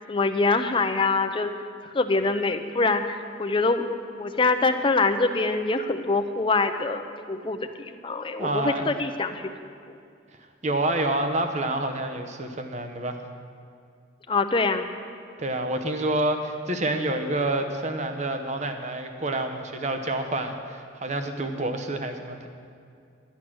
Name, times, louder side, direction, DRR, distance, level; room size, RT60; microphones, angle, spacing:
voice 1, 0.0-1.5 1.9-3.8 4.2-9.5 14.3-14.8, left 3 dB, 25° left, 7 dB, 0.6 m, -24 dB
voice 2, 8.4-8.8 10.6-13.2 15.4-22.5, right 2 dB, 40° right, 6 dB, 0.9 m, -28 dB
12.0 x 9.5 x 6.1 m, 2.3 s
head